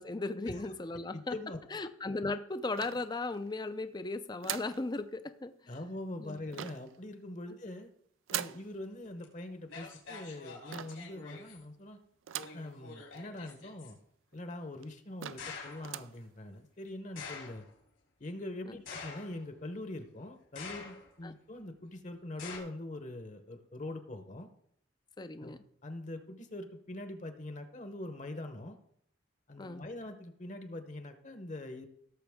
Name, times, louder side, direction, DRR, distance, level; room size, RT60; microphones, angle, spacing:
voice 1, 0.0-1.3 1.7-5.7 6.2-6.4 18.7-18.8 21.2-21.3 25.2-25.6 29.6-29.8, left 2 dB, 20° left, 11 dB, 0.4 m, -37 dB
voice 2, 1.1-1.6 5.7-7.9 8.3-12.0 12.5-14.0 14.3-17.7 18.2-24.5 25.4-28.8 29.5-31.9, left 1 dB, 35° left, 7 dB, 0.9 m, -43 dB
sound 1, 2.8-3.5 4.4-4.8 6.5-7.0 8.3-8.7 10.7-11.1 12.3-12.7 13.2-13.3 13.5-13.6 14.3-14.4 14.8-14.9 15.2-15.5 15.8-16.2, right 11 dB, 80° right, 0.4 m, -40 dB
sound 2, 9.2-9.3 9.7-11.6 12.3-13.9 15.4-15.9 17.2-17.7 18.9-19.6 20.5-21.2 22.4-22.6, left 4 dB, 85° left, 3.2 m, -46 dB
17.0 x 7.0 x 3.6 m, 0.69 s
head